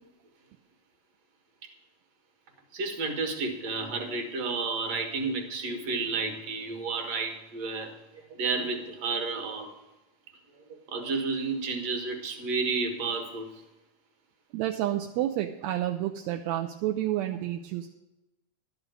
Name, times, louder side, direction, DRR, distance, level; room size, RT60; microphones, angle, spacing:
voice 1, 2.7-9.7 10.5-13.6, right 4 dB, 65° right, 3 dB, 2.5 m, -31 dB
voice 2, 14.5-17.9, right 13 dB, 80° right, 3 dB, 1.8 m, -30 dB
12.0 x 5.1 x 8.9 m, 0.99 s
omnidirectional pair, 3.3 m